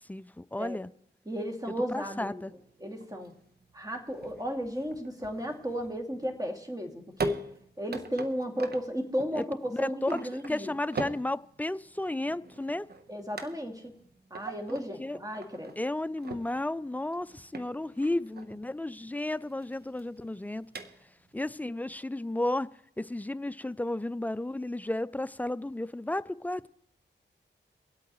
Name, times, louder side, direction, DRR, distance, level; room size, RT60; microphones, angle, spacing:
voice 1, 0.1-0.9 1.9-2.5 9.4-9.5 9.7-10.2 10.5-12.9 15.0-15.2 15.8-20.7 21.3-22.7 23.0-26.7, left 1 dB, 10° left, 0.4 m, -33 dB
voice 2, 1.3-2.4 2.8-3.3 3.7-7.4 7.8-10.7 13.1-13.9 14.3-15.7, equal, 20° right, 2.5 m, -34 dB
sound 1, 2.5-21.3, right 4 dB, 55° right, 1.1 m, -43 dB
24.5 x 8.3 x 3.1 m
cardioid pair, 45°, 20 cm